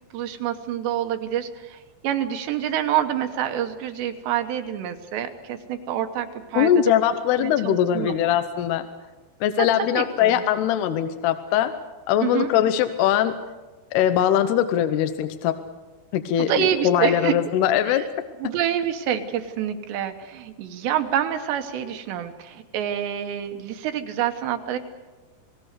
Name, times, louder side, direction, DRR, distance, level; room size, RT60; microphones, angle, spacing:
voice 1, 0.1-6.7 7.4-8.2 9.6-10.4 12.2-12.5 16.4-17.4 17.9-18.1 18.4-24.8, right 10 dB, 75° right, 6 dB, 3.3 m, -27 dB
voice 2, 6.6-8.8 9.4-11.7 12.1-13.4 13.9-15.6 16.1-18.0, left 10 dB, 75° left, 9 dB, 2.7 m, -21 dB
28.0 x 19.5 x 6.7 m, 1.2 s
omnidirectional pair, 5.2 m